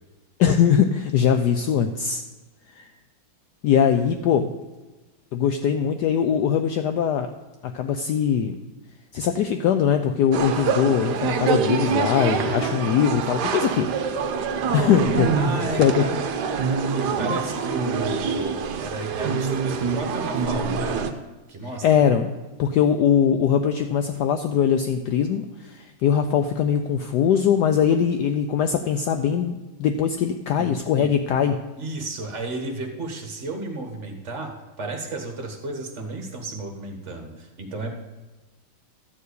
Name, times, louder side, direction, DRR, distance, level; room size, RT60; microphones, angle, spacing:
voice 1, 0.4-2.2 2.8-2.9 3.6-4.5 5.3-7.3 7.6-8.6 9.1-13.9 14.7-15.3 15.8-16.0 21.8-22.3 22.6-31.6, left 8 dB, 80° left, 7 dB, 0.9 m, -21 dB
sound 1, 10.3-21.1, right 5 dB, 65° right, 1.1 m, -25 dB
voice 2, 15.4-16.1 16.9-21.1 21.5-22.0 30.6-31.1 31.8-38.0, right 2 dB, 40° right, 3 dB, 1.3 m, -33 dB
13.0 x 4.6 x 8.2 m, 1.2 s
omnidirectional pair, 2.3 m